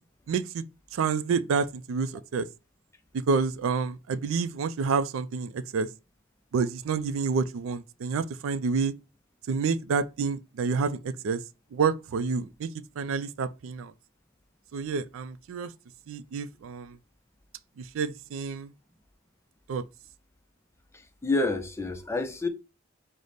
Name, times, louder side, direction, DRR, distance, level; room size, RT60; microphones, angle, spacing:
voice 1, 0.3-0.6 0.9-2.5 3.1-5.9 6.5-8.9 9.5-11.4 11.7-12.7 13.0-13.9 14.7-15.7 16.1-17.0 17.8-18.7 19.7-19.8, right 5 dB, 85° right, 0.4 m, -28 dB
voice 2, 20.9-22.5, left 2 dB, 15° left, 0.4 m, -29 dB
4.9 x 2.0 x 4.0 m
head